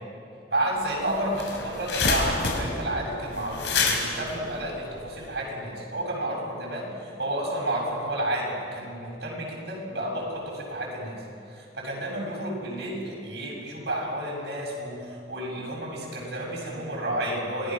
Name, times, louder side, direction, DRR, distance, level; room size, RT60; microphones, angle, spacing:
voice 1, 0.5-11.2 11.5-17.7, right 1 dB, 75° right, -3 dB, 7.5 m, -31 dB
sound 1, 0.8-0.9 1.2-5.4, left 4 dB, 80° left, 3.9 m, -27 dB
27.0 x 18.5 x 6.3 m, 2.5 s
head